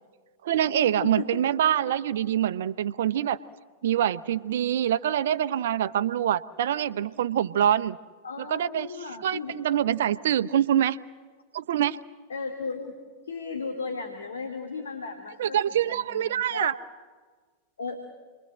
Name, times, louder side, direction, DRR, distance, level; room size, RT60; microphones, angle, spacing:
voice 1, 0.4-3.4 3.8-8.0 8.4-8.9 9.2-11.0 11.5-12.0 15.4-16.7, right 10 dB, 60° right, 12 dB, 0.9 m, -25 dB
voice 2, 8.2-9.6 12.3-12.9 13.2-16.7 17.8-18.0, left 4 dB, 70° left, 5 dB, 2.8 m, -35 dB
29.5 x 22.5 x 7.8 m, 1.4 s
figure-of-eight pair, 90°, 0 cm